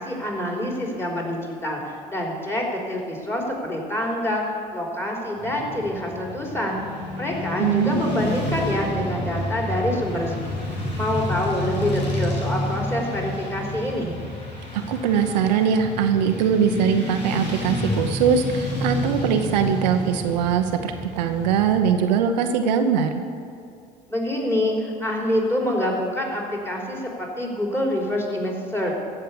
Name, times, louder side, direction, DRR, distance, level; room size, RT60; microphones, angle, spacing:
voice 1, 0.0-1.8 2.1-4.4 4.7-6.8 7.2-10.6 10.9-14.1 24.1-24.7 25.0-28.9, left 1 dB, 10° left, -1 dB, 3.8 m, -26 dB
Motorcycle / Traffic noise roadway noise, 5.4-22.0, left 1 dB, 90° left, 2.3 m, -30 dB
voice 2, 7.6-8.2 14.7-23.1, right 7 dB, 80° right, 6 dB, 0.8 m, -21 dB
15.0 x 5.6 x 8.5 m, 2.4 s
hypercardioid pair, 60°, 21 cm